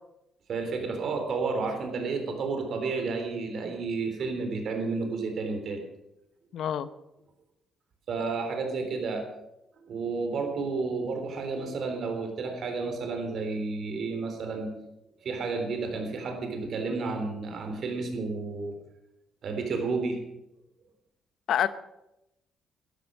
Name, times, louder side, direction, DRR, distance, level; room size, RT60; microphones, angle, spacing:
voice 1, 0.5-5.8 8.1-9.2 9.8-14.7 15.2-18.7 19.4-20.2, right 4 dB, 60° right, 4 dB, 3.5 m, -31 dB
voice 2, 6.5-6.9 21.5-21.7, left 10 dB, 70° left, 14 dB, 0.9 m, -26 dB
12.5 x 12.0 x 6.5 m, 0.88 s
cardioid pair, 90°, 0 cm